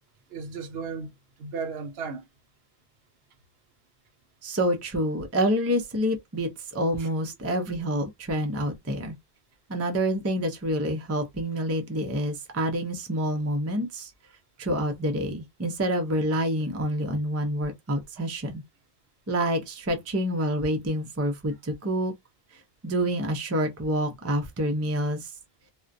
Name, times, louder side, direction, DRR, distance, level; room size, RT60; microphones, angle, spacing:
voice 1, 0.3-2.3 7.0-7.1 18.2-18.3, right 5 dB, 70° right, 0.8 m, -35 dB
voice 2, 4.4-9.1 9.7-14.1 14.6-18.6 19.3-22.1 22.8-25.3, equal, 25° right, 0.3 m, -27 dB
2.4 x 2.1 x 2.5 m
omnidirectional pair, 1.1 m